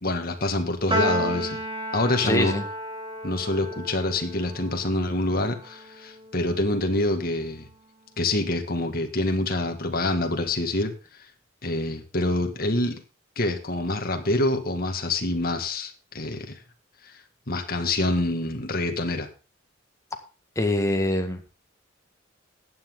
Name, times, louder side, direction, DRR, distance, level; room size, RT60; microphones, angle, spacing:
voice 1, 0.0-1.6 1.9-2.5 3.2-7.7 8.2-10.9 11.6-13.0 13.4-16.6 17.0-17.1 17.5-19.3, left 2 dB, 50° left, 5 dB, 2.1 m, -26 dB
Piano, 0.9-7.4, equal, 25° right, 2.2 m, -33 dB
voice 2, 2.2-2.6 20.6-21.4, left 1 dB, 15° left, 4 dB, 1.8 m, -24 dB
14.5 x 9.6 x 3.8 m, 0.34 s
head